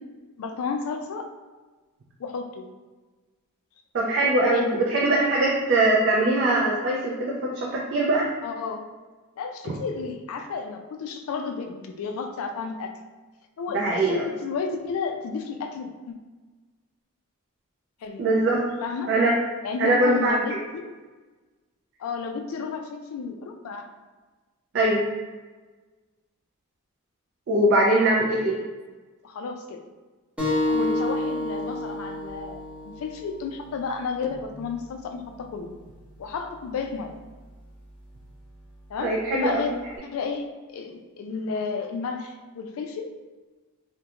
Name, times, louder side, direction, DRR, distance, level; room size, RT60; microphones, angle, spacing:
voice 1, 0.4-1.3 2.2-2.7 4.5-4.9 8.4-8.9 9.4-12.9 13.6-13.8 14.1-16.2 18.0-18.2 18.8-19.1 19.6-20.9 22.0-23.9 29.2-29.8 30.6-35.7 36.2-37.1 38.9-39.7 40.1-40.4 40.7-43.1, left 5 dB, 65° left, 6 dB, 0.3 m, -32 dB
voice 2, 3.9-8.2 13.7-14.3 18.2-18.6 19.1-19.3 19.8-20.6 24.7-25.0 27.5-28.5 30.7-30.9 39.0-39.7, right 2 dB, 55° right, -3 dB, 0.4 m, -22 dB
sound 1, 30.4-35.5, left 2 dB, 5° right, 0.7 m, -30 dB
2.4 x 2.1 x 2.8 m, 1.3 s
head